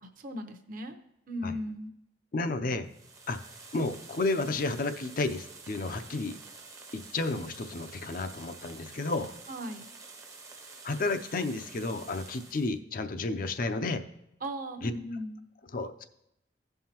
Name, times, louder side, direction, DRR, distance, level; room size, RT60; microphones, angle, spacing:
voice 1, 0.0-1.0 1.3-1.9 9.5-9.9 14.4-15.4, equal, 50° right, 6 dB, 0.8 m, -37 dB
voice 2, 2.3-2.9 3.3-3.4 3.7-6.4 6.9-9.3 10.8-14.0 14.8-14.9 15.7-16.0, left 3 dB, 50° left, 9 dB, 0.6 m, -31 dB
sound 1, 2.8-12.8, right 4 dB, 20° right, 0.7 m, -49 dB
16.0 x 5.6 x 2.9 m, 0.83 s
head